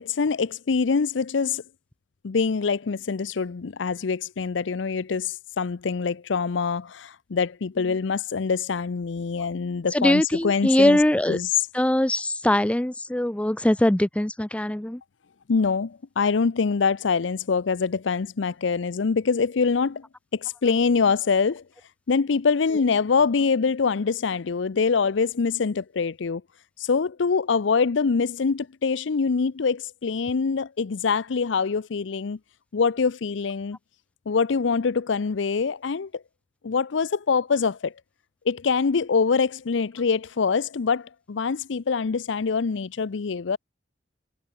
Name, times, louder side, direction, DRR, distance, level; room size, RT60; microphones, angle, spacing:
voice 1, 0.0-1.6 2.2-11.0 11.3-11.7 15.5-20.0 20.3-21.6 22.1-26.4 26.8-32.4 32.7-33.8 34.3-36.2 36.6-37.9 38.5-43.6, left 5 dB, 80° left, 0.5 m, -24 dB
voice 2, 9.9-11.4 11.7-15.0, left 1 dB, 5° left, 0.4 m, -22 dB
head